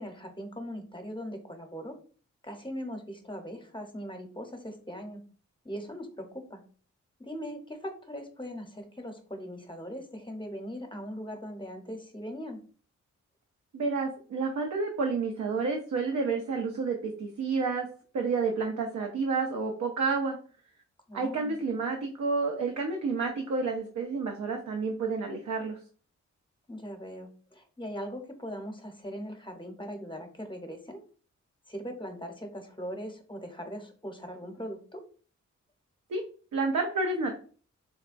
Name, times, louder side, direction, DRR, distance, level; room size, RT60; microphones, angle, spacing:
voice 1, 0.0-2.0 2.4-5.2 5.6-6.6 7.2-12.6 21.1-21.6 26.7-31.0 31.7-35.0, equal, 15° left, 5 dB, 0.8 m, -40 dB
voice 2, 13.7-17.9 18.1-20.4 21.1-25.8 36.1-36.2 36.5-37.4, right 4 dB, 75° right, 2 dB, 0.6 m, -30 dB
4.1 x 2.2 x 2.5 m, 0.42 s
cardioid pair, 50°, 30 cm